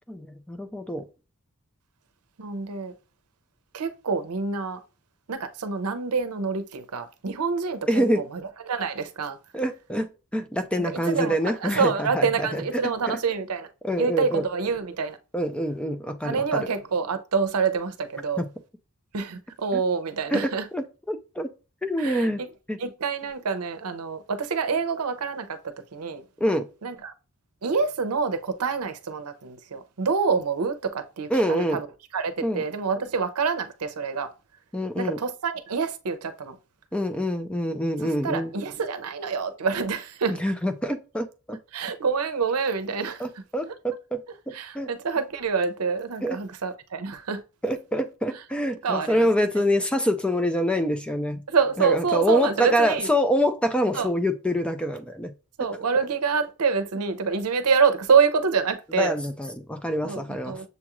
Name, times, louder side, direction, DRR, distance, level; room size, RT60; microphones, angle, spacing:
voice 1, 0.1-1.1 7.9-8.3 9.5-13.2 13.8-14.4 15.3-16.7 18.4-18.5 19.7-19.8 20.3-21.5 21.8-22.4 22.7-22.8 26.4-26.7 31.3-31.8 32.4-32.6 34.7-35.2 36.9-38.5 40.4-41.6 43.2-44.2 44.5-44.9 46.2-46.4 47.6-51.4 51.8-55.3 59.0-60.6, equal, 5° left, 0.4 m, -26 dB
voice 2, 2.4-2.9 3.7-4.8 5.3-8.4 8.7-9.4 10.8-13.7 14.0-15.2 16.2-18.5 19.1-20.6 22.0-22.5 22.8-26.2 26.8-27.1 27.6-31.9 32.1-34.3 35.0-36.6 38.0-40.4 41.7-43.2 44.5-47.4 48.8-49.3 51.5-53.1 53.9-54.1 55.6-59.2 60.0-60.7, right 5 dB, 75° right, 0.6 m, -26 dB
7.0 x 2.4 x 3.0 m
head